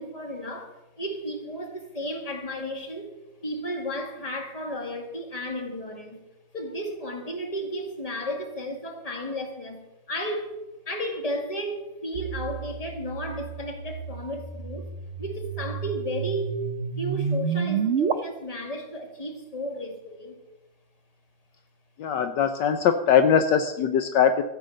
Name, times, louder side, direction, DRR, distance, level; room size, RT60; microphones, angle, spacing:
voice 1, 0.0-3.1 3.4-6.2 6.5-10.6 10.9-14.9 15.2-20.4, equal, 20° left, 1.9 m, -33 dB
sound 1, 12.1-18.1, right 6 dB, 55° right, 0.7 m, -30 dB
voice 2, 22.0-24.4, left 7 dB, 70° left, 1.3 m, -21 dB
14.5 x 8.2 x 6.4 m
omnidirectional pair, 2.1 m